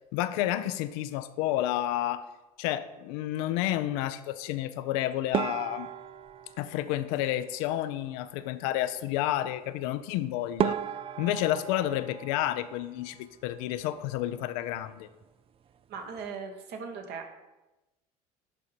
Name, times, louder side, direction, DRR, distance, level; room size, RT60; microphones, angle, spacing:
voice 1, 0.1-2.3 2.6-5.9 6.6-10.8 11.2-15.1, left 13 dB, 65° left, 13 dB, 0.5 m, -30 dB
sound 1, 5.3-7.8 10.1-10.2 10.6-13.4 13.6-14.4 14.7-14.9 15.2-15.3 15.9-16.3, right 9 dB, 30° right, 0.3 m, -35 dB
voice 2, 15.9-17.3, right 5 dB, 55° right, 4 dB, 1.3 m, -39 dB
11.0 x 3.9 x 4.3 m, 1.0 s
hypercardioid pair, 65°, 20 cm